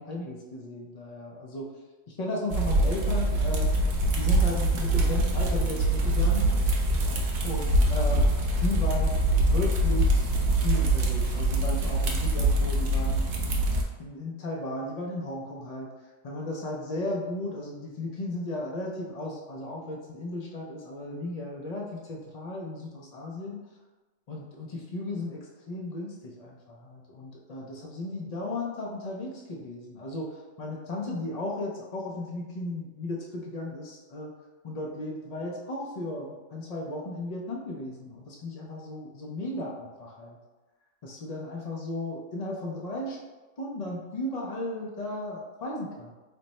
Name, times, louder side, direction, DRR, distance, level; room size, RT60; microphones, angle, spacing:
voice 1, 0.0-1.7 2.1-3.7 4.2-6.5 7.4-8.3 8.6-10.3 10.6-13.5 14.0-15.9 16.2-23.6 24.3-34.4 34.6-40.4 41.0-43.2 43.6-46.1, left 1 dB, 70° left, -2 dB, 0.3 m, -35 dB
sound 1, 2.5-13.8, right 1 dB, 70° right, 0.4 m, -24 dB
3.3 x 2.0 x 4.0 m, 1.2 s
omnidirectional pair, 1.4 m